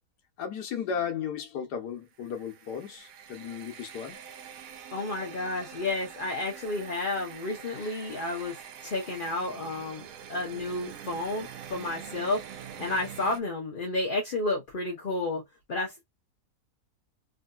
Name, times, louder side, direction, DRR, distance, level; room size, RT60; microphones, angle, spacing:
voice 1, 0.4-4.2, left 7 dB, 85° left, 1.5 m, -35 dB
sound 1, 2.1-13.4, right 8 dB, 70° right, 0.9 m, -45 dB
voice 2, 4.9-8.6 8.8-15.4 15.7-16.1, left 2 dB, 40° left, 0.8 m, -31 dB
3.6 x 2.6 x 2.3 m
omnidirectional pair, 1.7 m